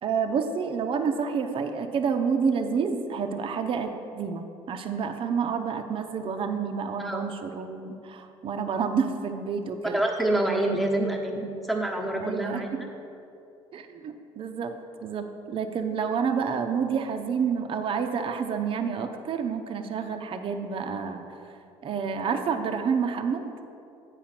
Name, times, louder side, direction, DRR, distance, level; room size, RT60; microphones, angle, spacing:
voice 1, 0.0-10.0 12.2-12.8 13.7-14.8 15.0-21.5 21.8-23.5, right 6 dB, 45° right, 5 dB, 0.7 m, -29 dB
voice 2, 9.8-12.7, right 1 dB, ahead, 0 dB, 1.2 m, -27 dB
8.6 x 5.0 x 5.9 m, 2.7 s
hypercardioid pair, 70°, 12 cm